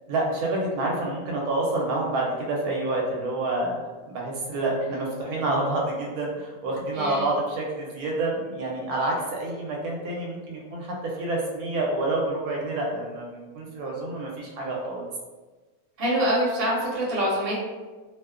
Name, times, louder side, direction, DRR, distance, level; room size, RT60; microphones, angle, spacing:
voice 1, 0.1-15.0, right 2 dB, 85° right, -2 dB, 1.1 m, -28 dB
voice 2, 6.9-7.2 16.0-17.6, equal, 50° right, -5 dB, 0.9 m, -25 dB
2.7 x 2.1 x 2.3 m, 1.3 s
omnidirectional pair, 1.5 m